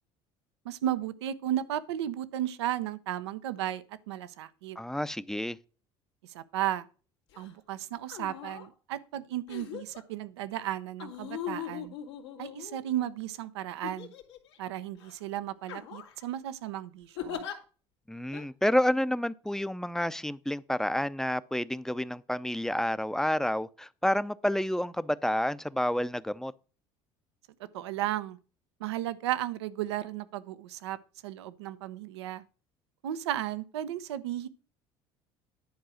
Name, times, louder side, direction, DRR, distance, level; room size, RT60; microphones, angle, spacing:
voice 1, 0.6-4.8 6.3-6.9 7.4-11.9 12.4-14.1 14.6-17.4 27.7-28.4 28.8-31.0 31.2-32.4 33.0-34.5, right 12 dB, 85° right, 0.7 m, -34 dB
voice 2, 4.8-5.6 18.1-26.5, left 1 dB, 5° left, 0.5 m, -29 dB
sound 1, 7.3-7.5 8.0-8.7 9.5-10.0 11.0-13.1 13.8-14.6 15.0-15.2 15.6-16.2 17.2-17.6 18.3-18.4, left 9 dB, 90° left, 2.0 m, -40 dB
10.5 x 4.7 x 6.3 m
hypercardioid pair, 75°, 14 cm